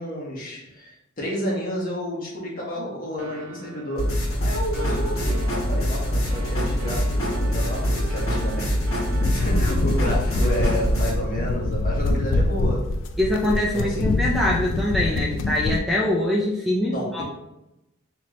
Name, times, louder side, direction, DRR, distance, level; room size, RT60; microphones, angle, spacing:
voice 1, 0.0-8.7 9.2-12.9 13.7-14.1 16.9-17.2, equal, 45° left, -4 dB, 1.3 m, -30 dB
sound 1, 3.2-11.4, right 3 dB, 80° right, 0.5 m, -40 dB
sound 2, 4.0-11.1, equal, 90° left, 1.4 m, -24 dB
sound 3, 9.1-15.8, left 2 dB, 65° left, 0.4 m, -25 dB
voice 2, 13.2-17.2, left 1 dB, ahead, -3 dB, 0.4 m, -23 dB
4.3 x 2.9 x 3.0 m, 0.90 s
head